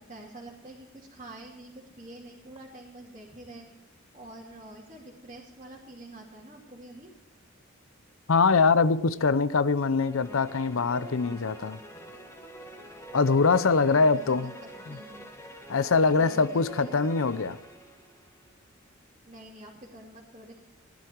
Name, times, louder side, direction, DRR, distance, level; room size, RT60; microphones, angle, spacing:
voice 1, 0.0-3.7 4.1-7.1 13.9-14.5 14.9-15.4 16.2-17.0 19.2-20.6, right 1 dB, 35° right, -7 dB, 2.7 m, -47 dB
voice 2, 8.3-11.8 13.1-14.5 14.9-15.0 15.7-17.6, left 4 dB, 75° left, 16 dB, 0.7 m, -23 dB
sound 1, 10.0-18.5, equal, 15° left, 1.6 m, -46 dB
16.5 x 12.0 x 4.6 m, 0.99 s
head